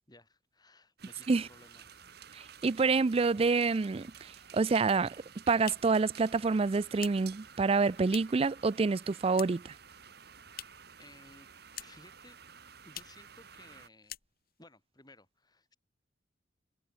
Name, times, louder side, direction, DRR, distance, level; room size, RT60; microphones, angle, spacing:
voice 1, 0.1-2.0 11.0-11.5 11.8-12.4 12.8-14.2 14.6-15.8, left 2 dB, 20° left, 7.7 m, -58 dB
sound 1, 1.0-13.9, right 7 dB, 60° right, 2.9 m, -53 dB
voice 2, 2.3-4.1 4.5-5.1 5.5-9.7, right 4 dB, 30° right, 0.4 m, -27 dB
sound 2, 5.2-8.5 8.8-9.8 10.0-11.0 11.2-12.2 12.4-12.5 12.9-13.3 13.6-13.8 14.0-14.7, left 12 dB, 55° left, 4.2 m, -48 dB
head